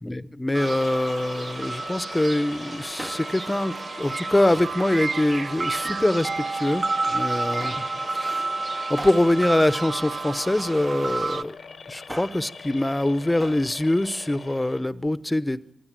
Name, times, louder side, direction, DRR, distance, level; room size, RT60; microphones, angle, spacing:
voice 1, 0.0-7.8 8.1-8.5 8.9-11.6 11.9-15.7, left 1 dB, 15° left, 1.0 m, -24 dB
sound 1, 0.5-11.4, right 3 dB, 45° right, 0.7 m, -30 dB
sound 2, 0.8-14.8, left 5 dB, 60° left, 0.9 m, -42 dB
Male speech man speaking, 3.0-3.6 4.5-4.9 5.7-6.5 7.6-8.0 9.0-10.6 11.9-12.5 13.4-13.7 14.0-14.1, right 1 dB, 20° right, 0.9 m, -41 dB
24.0 x 16.0 x 7.7 m
supercardioid pair, 45°, 0 cm